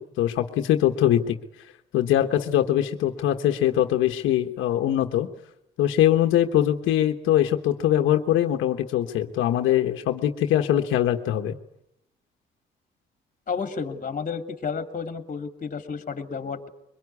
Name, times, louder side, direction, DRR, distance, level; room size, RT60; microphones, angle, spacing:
voice 1, 0.0-1.4 1.9-5.3 5.8-11.5, left 11 dB, 90° left, 5 dB, 1.3 m, -22 dB
voice 2, 13.5-16.7, left 5 dB, 40° left, 6 dB, 3.1 m, -31 dB
23.5 x 21.5 x 9.7 m, 0.80 s
cardioid pair, 90°, 20 cm